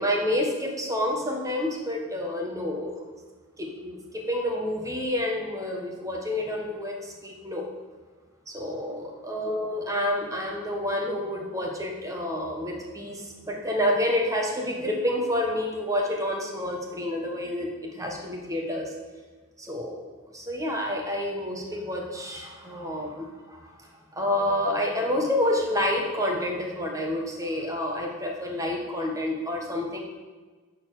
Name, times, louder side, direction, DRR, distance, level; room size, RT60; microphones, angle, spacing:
voice 1, 0.0-3.1 3.6-7.7 8.5-18.9 19.6-20.1 20.3-23.9 24.1-30.0, left 1 dB, 15° right, 1 dB, 1.4 m, -29 dB
11.5 x 4.3 x 6.6 m, 1.4 s
head